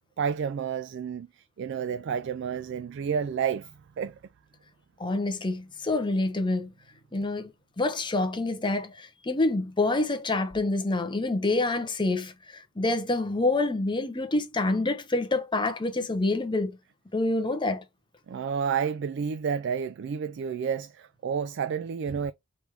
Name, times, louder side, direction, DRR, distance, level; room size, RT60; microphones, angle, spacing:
voice 1, 0.2-1.3 1.6-4.2 18.3-22.3, right 7 dB, 55° right, 0.3 m, -30 dB
voice 2, 5.0-6.7 7.1-7.5 7.8-16.8 17.1-17.8, left 2 dB, 20° left, 0.8 m, -27 dB
4.9 x 3.3 x 3.4 m
head